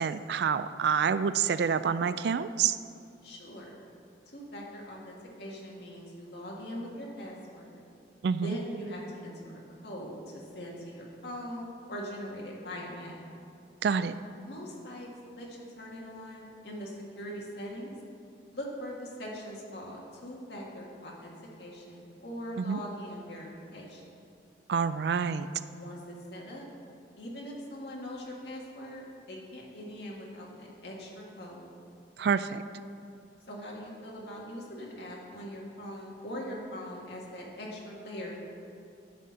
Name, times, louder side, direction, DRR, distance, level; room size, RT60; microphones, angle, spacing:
voice 1, 0.0-2.8 8.2-8.6 13.8-14.1 22.6-22.8 24.7-25.5 32.2-32.6, right 6 dB, 65° right, 13 dB, 0.3 m, -27 dB
voice 2, 3.2-3.8 4.3-7.8 8.4-13.2 14.4-15.1 15.4-17.9 18.5-24.1 25.7-26.6 27.2-31.7 33.5-38.4, equal, 65° left, -3 dB, 1.7 m, -41 dB
10.5 x 4.2 x 7.6 m, 2.5 s
head